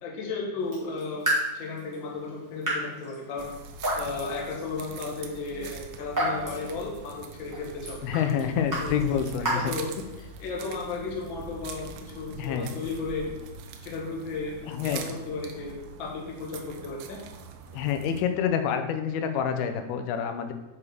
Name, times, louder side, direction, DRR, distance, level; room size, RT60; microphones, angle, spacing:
voice 1, 0.0-1.2 1.5-3.5 3.9-8.0 8.8-9.1 9.4-9.9 10.4-13.3 13.8-14.5 14.8-17.2, left 4 dB, 55° left, -2 dB, 1.3 m, -34 dB
Raindrop / Drip, 0.6-10.5, right 1 dB, 5° right, 1.9 m, -34 dB
sound 1, 3.4-18.2, right 5 dB, 85° right, 2.4 m, -43 dB
voice 2, 8.0-9.7 12.4-12.7 14.7-15.0 17.7-20.5, left 8 dB, 85° left, 7 dB, 2.6 m, -27 dB
7.1 x 5.0 x 4.8 m, 1.0 s
omnidirectional pair, 4.3 m